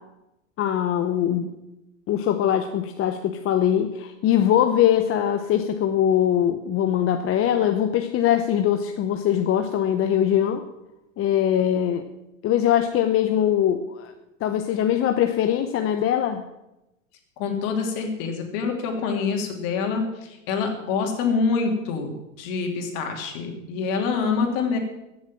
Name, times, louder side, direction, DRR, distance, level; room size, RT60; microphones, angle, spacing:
voice 1, 0.6-1.5 2.1-10.6 11.2-12.0 12.4-14.1 14.4-16.4, left 10 dB, 35° left, 6 dB, 0.9 m, -22 dB
voice 2, 17.4-24.8, left 5 dB, 55° left, 3 dB, 3.1 m, -26 dB
15.0 x 7.3 x 7.4 m, 0.94 s
hypercardioid pair, 105°, 39 cm